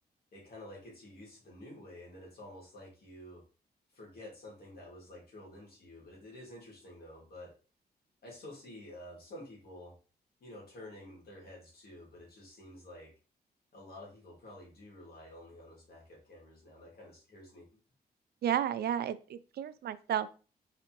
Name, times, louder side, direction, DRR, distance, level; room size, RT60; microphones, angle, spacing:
voice 1, 0.3-3.4 3.9-7.5 8.2-10.0 10.4-13.1 13.7-17.7, left 1 dB, 70° left, -3 dB, 2.0 m, -50 dB
voice 2, 18.4-20.3, right 10 dB, 75° right, 14 dB, 0.4 m, -32 dB
4.1 x 3.5 x 2.9 m, 0.34 s
cardioid pair, 90°, 17 cm